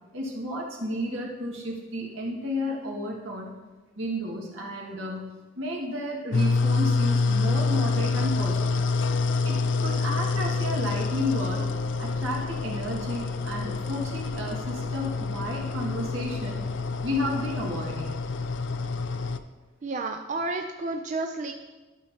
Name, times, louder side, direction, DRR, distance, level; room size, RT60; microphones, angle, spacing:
voice 1, 0.1-3.5 4.0-5.3 5.6-8.9 9.4-11.6 12.0-16.6 17.0-18.2, left 1 dB, 80° right, -2 dB, 1.9 m, -32 dB
sound 1, 6.3-19.4, left 4 dB, 65° left, 0.4 m, -27 dB
voice 2, 19.8-21.5, right 3 dB, 40° right, 4 dB, 0.4 m, -31 dB
12.0 x 6.4 x 2.9 m, 1.2 s
head